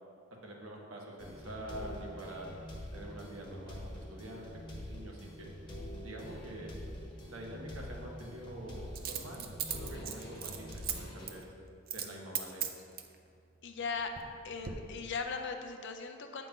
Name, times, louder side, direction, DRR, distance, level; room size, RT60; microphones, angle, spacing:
voice 1, 0.4-2.5 2.9-5.5 6.0-6.7 7.2-11.5 11.9-12.8, right 1 dB, 80° right, -1 dB, 1.3 m, -46 dB
sound 1, 1.2-11.3, equal, 25° left, 1.1 m, -45 dB
Coin (dropping), 6.3-6.4 8.9-10.9 11.3-11.4 11.9-12.1 12.3-13.1 13.8-14.3 14.6-14.7, right 9 dB, 45° right, 0.5 m, -38 dB
voice 2, 13.6-14.1 14.4-16.5, left 5 dB, 60° left, 6 dB, 0.6 m, -38 dB
8.6 x 5.8 x 3.8 m, 2.4 s
head